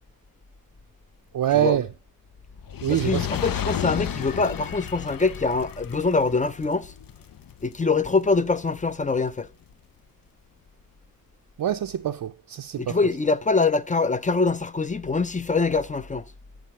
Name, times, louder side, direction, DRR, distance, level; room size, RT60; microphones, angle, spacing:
voice 1, 1.3-1.9 2.8-3.3 11.6-13.0, right 11 dB, 70° right, 0.5 m, -24 dB
Fire, 2.6-9.0 9.7-9.8, left 10 dB, 70° left, 0.6 m, -33 dB
voice 2, 2.9-6.9 7.6-9.5 12.8-16.2, left 4 dB, 20° left, 0.5 m, -24 dB
9.2 x 8.5 x 4.2 m
wide cardioid pair, 140°, 36 cm